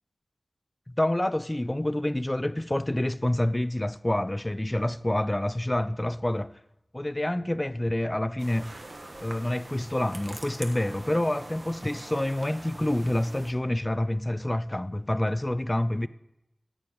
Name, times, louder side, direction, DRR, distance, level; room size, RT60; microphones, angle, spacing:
voice 1, 0.9-6.5 6.9-8.7 9.2-16.1, left 1 dB, 20° left, 0.4 m, -27 dB
sound 1, 8.4-13.5, right 2 dB, 50° right, 1.5 m, -44 dB
14.0 x 5.2 x 9.3 m
wide cardioid pair, 60°, 0 cm